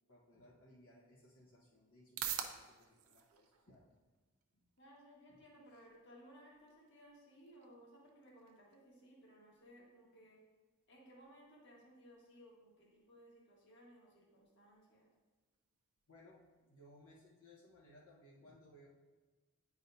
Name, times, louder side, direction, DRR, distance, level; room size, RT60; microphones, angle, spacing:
voice 1, 0.1-3.9 4.5-4.6 5.3-5.4 16.1-18.9, left 1 dB, 80° left, -6 dB, 1.2 m, -63 dB
sound 1, 0.7-17.7, right 9 dB, 75° right, 0.6 m, -53 dB
voice 2, 4.8-10.4 10.9-15.1, equal, 55° left, -3 dB, 1.6 m, -61 dB
9.4 x 4.8 x 2.7 m, 1.3 s
head